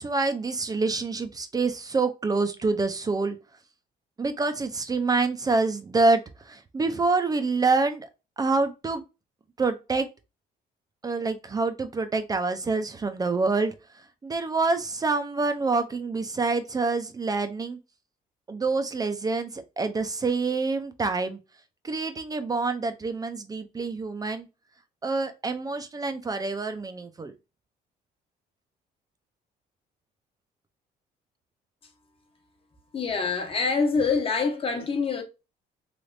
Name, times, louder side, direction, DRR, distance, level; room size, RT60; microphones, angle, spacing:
voice 1, 0.0-3.4 4.2-8.1 8.4-9.0 9.6-10.1 11.0-13.7 14.2-17.8 18.5-21.4 21.8-24.5 25.0-27.3, right 3 dB, 20° right, 0.5 m, -26 dB
voice 2, 32.9-35.2, left 4 dB, 35° left, 1.0 m, -25 dB
3.4 x 3.0 x 2.5 m
cardioid pair, 110°, 17 cm